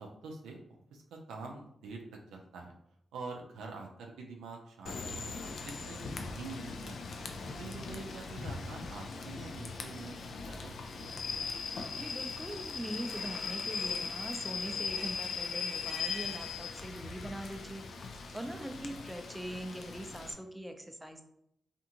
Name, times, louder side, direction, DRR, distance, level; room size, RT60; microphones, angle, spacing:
voice 1, 0.0-2.7 3.1-6.0 6.3-7.2 7.6-11.2 18.4-18.6, right 3 dB, 85° right, 1 dB, 0.4 m, -46 dB
Rain / Train, 4.9-20.3, left 5 dB, 70° left, 0.3 m, -39 dB
voice 2, 11.9-21.2, right 1 dB, 5° right, 5 dB, 0.5 m, -42 dB
2.5 x 2.4 x 2.8 m, 0.74 s
supercardioid pair, 40°, 0 cm